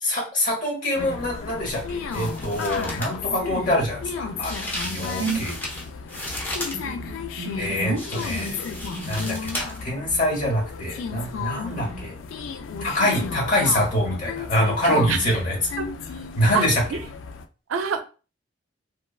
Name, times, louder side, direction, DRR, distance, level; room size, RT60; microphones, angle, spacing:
voice 1, 0.0-5.5 7.6-8.6 9.0-12.1 12.8-15.6 16.4-16.8, left 1 dB, 40° left, 0.9 m, -25 dB
sound 1, 0.9-17.4, left 5 dB, 80° left, 0.3 m, -34 dB
sound 2, 1.7-1.8 2.1-3.2 4.4-6.8 8.0-9.9 10.2-10.3, left 1 dB, 10° left, 0.6 m, -34 dB
voice 2, 3.3-3.7 5.2-5.5 6.7-8.0 8.9-9.3 11.7-12.0 13.0-13.3 14.8-15.2 15.8-15.9 16.5-16.7 17.7-18.0, right 6 dB, 85° right, 0.4 m, -29 dB
3.0 x 2.1 x 2.3 m
head